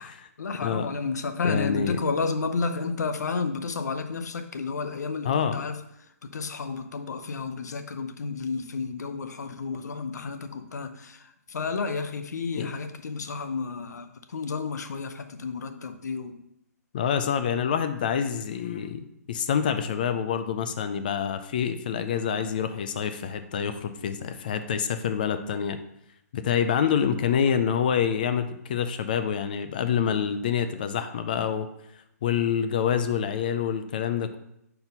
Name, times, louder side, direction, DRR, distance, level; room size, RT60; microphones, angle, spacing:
voice 1, 0.0-5.8 6.2-16.4 26.8-27.0 27.3-27.5, left 4 dB, 85° left, 9 dB, 0.7 m, -31 dB
voice 2, 1.4-2.0 5.2-5.6 12.6-12.7 16.9-25.8 26.3-31.7 32.2-34.4, left 8 dB, 30° left, 9 dB, 0.3 m, -27 dB
4.4 x 4.1 x 5.2 m, 0.79 s
hypercardioid pair, 170°, 9 cm